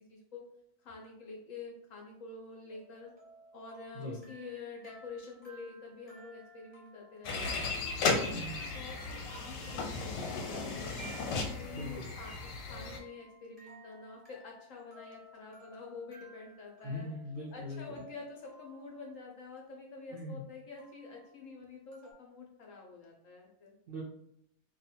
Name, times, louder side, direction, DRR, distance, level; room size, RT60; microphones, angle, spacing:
voice 1, 0.1-0.5 0.8-3.1 3.5-11.0 11.5-17.1 17.5-23.7, left 4 dB, 65° left, 0 dB, 0.8 m, -48 dB
sound 1, 2.7-19.1 20.8-21.3 21.9-22.1, right 2 dB, 20° right, 1.0 m, -57 dB
sound 2, 7.2-13.0, left 4 dB, 90° left, 1.2 m, -35 dB
voice 2, 8.3-8.6 11.7-12.1 16.8-18.0 20.1-20.4 23.9-24.0, left 1 dB, 75° right, -4 dB, 0.5 m, -41 dB
2.7 x 2.4 x 4.1 m, 0.72 s
omnidirectional pair, 1.8 m